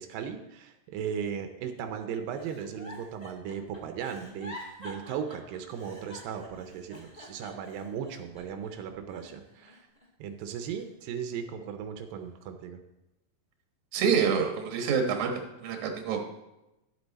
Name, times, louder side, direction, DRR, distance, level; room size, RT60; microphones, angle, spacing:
voice 1, 0.0-9.8 10.2-12.8, right 7 dB, 90° right, 6 dB, 2.4 m, -37 dB
Giggle, 2.3-8.7 9.1-10.1 10.5-11.6 12.1-12.5, left 1 dB, 15° left, 1.4 m, -48 dB
voice 2, 13.9-15.3 15.6-16.2, right 6 dB, 65° right, 3 dB, 2.5 m, -26 dB
11.0 x 8.0 x 4.1 m, 0.94 s
omnidirectional pair, 3.9 m